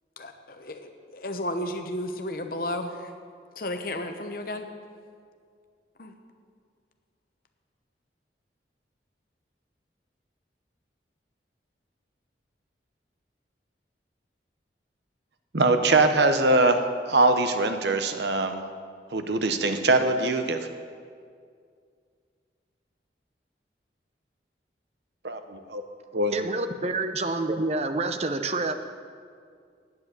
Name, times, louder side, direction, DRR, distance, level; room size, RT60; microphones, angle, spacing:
voice 1, 0.2-3.0 3.6-4.7 6.0-6.1, left 1 dB, 55° left, 6 dB, 0.9 m, -33 dB
voice 2, 15.5-16.8 17.1-18.6 19.1-20.6 25.2-25.8 26.1-26.4, right 2 dB, 75° right, 8 dB, 0.8 m, -22 dB
voice 3, 26.3-28.7, right 2 dB, 35° right, 8 dB, 0.7 m, -28 dB
9.5 x 8.5 x 8.1 m, 2.2 s
head